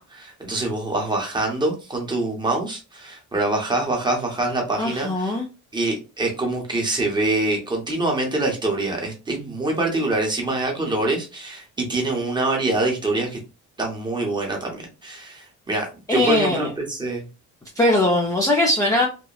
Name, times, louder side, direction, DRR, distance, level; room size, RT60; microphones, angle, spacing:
voice 1, 0.0-5.4 5.7-13.4 13.8-17.2, right 2 dB, 15° right, 0 dB, 0.7 m, -25 dB
voice 2, 4.8-5.4 16.1-16.7 17.8-19.1, left 1 dB, 10° left, -1 dB, 0.4 m, -20 dB
2.8 x 2.1 x 2.3 m, 0.31 s
cardioid pair, 150°, 32 cm